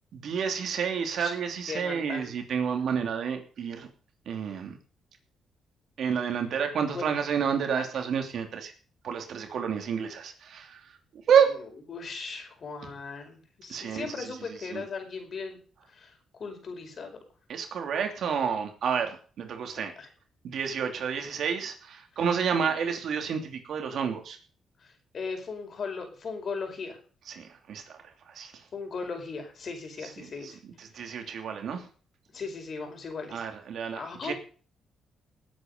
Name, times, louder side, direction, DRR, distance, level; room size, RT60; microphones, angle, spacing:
voice 1, 0.1-3.9 4.3-4.8 6.0-8.7 9.0-10.8 11.3-11.5 12.8-12.9 13.7-14.3 14.7-14.8 17.5-19.9 20.4-24.4 27.3-28.0 28.3-28.5 30.0-30.5 30.8-31.9 33.3-34.3, right 7 dB, 65° right, 5 dB, 3.1 m, -29 dB
voice 2, 1.7-2.3 6.9-7.1 7.8-7.9 11.9-15.6 15.9-17.2 20.0-20.1 22.7-22.8 24.8-27.0 28.7-30.6 32.3-33.4 33.9-34.3, left 4 dB, 50° left, 5 dB, 4.9 m, -38 dB
19.0 x 8.6 x 5.4 m, 0.41 s
cardioid pair, 105°, 0 cm